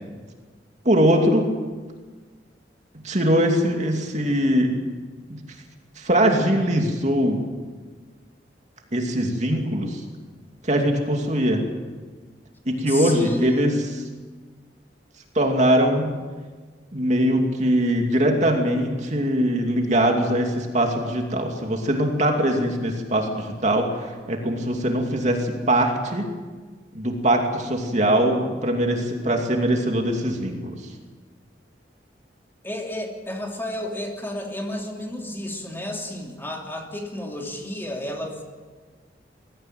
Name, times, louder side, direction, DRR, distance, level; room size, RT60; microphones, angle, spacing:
voice 1, 0.8-1.5 3.0-4.7 5.3-5.4 6.0-7.4 8.9-10.0 10.6-11.6 12.7-13.7 15.3-16.1 16.9-26.3 26.9-30.8, right 1 dB, 40° right, 2 dB, 2.7 m, -21 dB
voice 2, 12.9-13.8 32.6-38.4, left 1 dB, 15° left, 1 dB, 2.8 m, -31 dB
21.5 x 15.5 x 9.2 m, 1.4 s
head